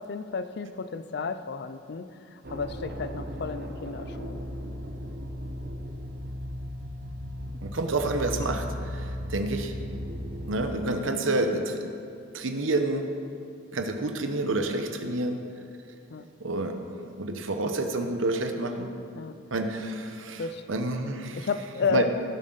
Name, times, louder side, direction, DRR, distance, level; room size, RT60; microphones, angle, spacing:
voice 1, 0.0-4.4 11.0-11.4 16.1-16.3 19.2-19.4 20.4-20.9 21.4-22.1, left 4 dB, 60° left, 12 dB, 0.5 m, -32 dB
sound 1, 2.4-10.7, equal, 55° right, 0.9 m, -36 dB
voice 2, 7.6-9.7 10.5-11.9 12.3-13.1 13.7-15.4 16.4-16.8 17.2-18.9 19.5-20.4 20.7-21.5 21.9-22.1, right 2 dB, 80° right, 5 dB, 1.0 m, -29 dB
17.0 x 7.5 x 4.0 m, 2.5 s
head